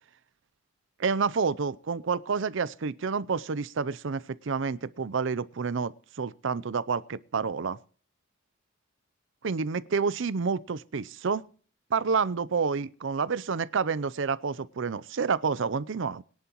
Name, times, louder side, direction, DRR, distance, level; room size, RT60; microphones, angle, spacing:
voice 1, 1.0-7.8 9.4-11.4 11.9-16.2, right 5 dB, 60° right, 0.5 m, -29 dB
22.0 x 10.5 x 3.0 m
head